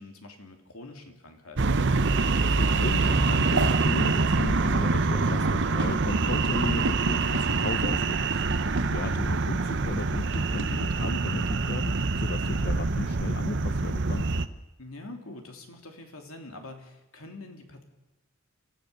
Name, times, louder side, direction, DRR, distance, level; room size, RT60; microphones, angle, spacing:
voice 1, 0.0-1.8 8.9-9.3 14.8-17.8, left 2 dB, 75° left, 4 dB, 3.1 m, -45 dB
sound 1, 1.6-14.5, right 3 dB, 55° right, 0.9 m, -25 dB
voice 2, 2.3-14.3, left 3 dB, 50° left, 10 dB, 0.7 m, -35 dB
29.5 x 14.5 x 6.9 m, 1.0 s
head